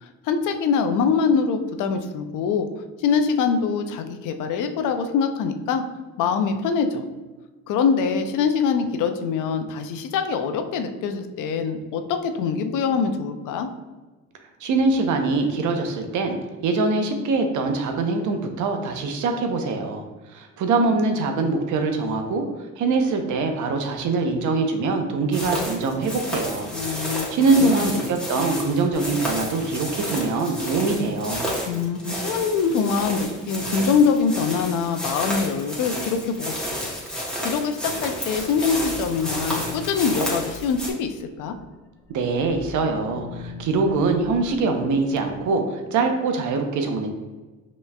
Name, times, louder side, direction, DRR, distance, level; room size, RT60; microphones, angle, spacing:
voice 1, 0.0-2.7 3.0-5.8 6.2-7.0 7.7-13.7 26.7-27.3 27.6-27.9 31.7-36.9 37.4-41.6, left 5 dB, 85° left, 7 dB, 0.5 m, -24 dB
voice 2, 14.6-16.4 16.6-20.0 20.3-22.4 22.8-26.7 27.3-31.5 42.1-47.1, right 3 dB, 80° right, 5 dB, 0.7 m, -23 dB
sound 1, 25.3-40.9, equal, 5° left, 1.3 m, -31 dB
sound 2, 37.8-41.7 42.1-45.5, left 4 dB, 45° left, 0.8 m, -42 dB
5.5 x 3.0 x 2.2 m, 1.2 s
cardioid pair, 90°, 30 cm